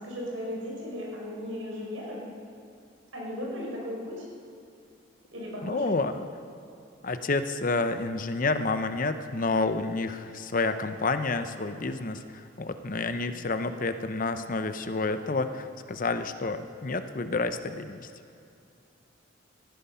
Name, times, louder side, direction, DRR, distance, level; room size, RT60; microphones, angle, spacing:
voice 1, 0.0-2.2 3.1-4.2 5.3-5.9, left 1 dB, 90° right, -3 dB, 5.0 m, -36 dB
voice 2, 5.6-6.3 7.0-18.1, left 3 dB, 45° left, 10 dB, 0.7 m, -29 dB
18.0 x 14.0 x 5.6 m, 2.5 s
head